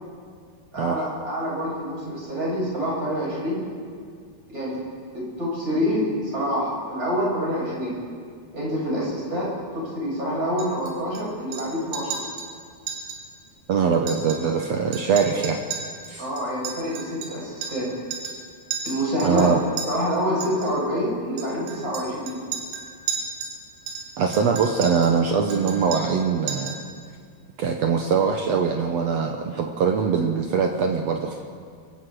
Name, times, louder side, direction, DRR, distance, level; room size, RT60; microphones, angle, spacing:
voice 1, 0.7-3.6 4.5-4.8 5.1-6.0 6.3-8.0 8.5-12.2 16.2-17.9 18.8-19.5 19.9-22.4, equal, 20° right, -5 dB, 8.1 m, -27 dB
Chink clink, 10.6-11.2 11.5-11.7 11.9-12.5 12.9-13.2 13.5-13.6 13.9-14.7 14.9-17.9 18.1-18.4 18.7-19.9 20.4-20.7 21.4-23.6 23.9-25.2 25.5-26.2 26.5-26.9, right 6 dB, 65° right, 5.6 m, -34 dB
voice 2, 13.7-15.6 16.1-16.3 19.2-19.6 24.2-26.7 27.6-31.4, right 6 dB, 85° right, 3 dB, 1.5 m, -22 dB
27.5 x 23.5 x 4.9 m, 2.1 s
omnidirectional pair, 4.7 m